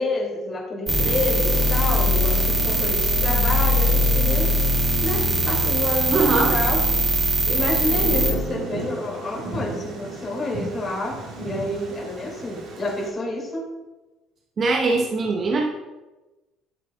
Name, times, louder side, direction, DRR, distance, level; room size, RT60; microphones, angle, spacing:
voice 1, 0.0-4.5 5.0-13.6, left 2 dB, 30° left, -4 dB, 2.8 m, -29 dB
sound 1, 0.9-8.3, equal, 10° right, 3.1 m, -21 dB
voice 2, 6.1-6.5 14.6-15.7, right 3 dB, 45° right, 0 dB, 1.1 m, -21 dB
Thunder, 7.9-13.1, right 2 dB, 60° right, 1.9 m, -34 dB
10.5 x 8.1 x 2.4 m, 1.1 s
hypercardioid pair, 55°, 0 cm